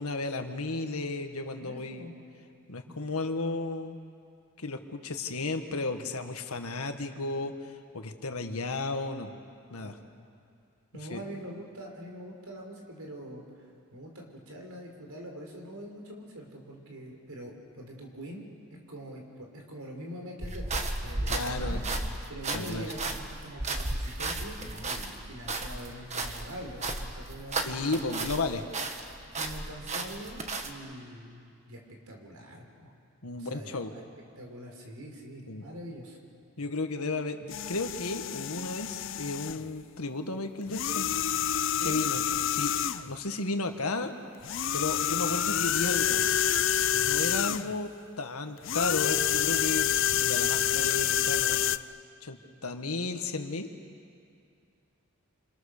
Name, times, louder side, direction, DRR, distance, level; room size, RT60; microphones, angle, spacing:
voice 1, 0.0-2.1 2.7-4.0 4.6-9.3 9.7-10.0 11.1-11.2 21.3-22.1 22.5-22.9 27.6-28.6 33.2-33.9 35.5-35.6 36.6-41.1 41.8-42.7 43.1-44.1 44.7-46.2 47.0-51.6 52.2-53.7, left 3 dB, 80° left, 6 dB, 1.7 m, -34 dB
voice 2, 1.6-2.2 9.8-10.0 10.9-13.4 13.9-18.5 18.9-21.8 22.3-28.1 29.4-32.9 33.3-34.0 34.4-36.2 41.8-42.0 46.9-47.1, equal, 80° right, 1 dB, 4.8 m, -44 dB
sound 1, 20.4-28.5 28.7-30.7, right 2 dB, 30° right, 1.5 m, -34 dB
sound 2, 37.5-39.7 40.7-43.1 44.4-47.8 48.6-51.8, left 10 dB, 55° left, 0.5 m, -28 dB
29.0 x 26.0 x 6.8 m, 2.4 s
head